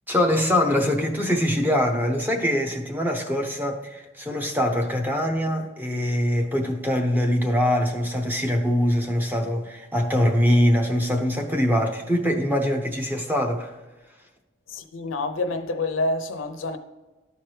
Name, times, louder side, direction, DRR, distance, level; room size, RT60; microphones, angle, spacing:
voice 1, 0.1-13.7, equal, 10° right, 0.7 m, -23 dB
voice 2, 14.7-16.8, left 2 dB, 80° left, 0.6 m, -27 dB
12.0 x 4.5 x 3.2 m
head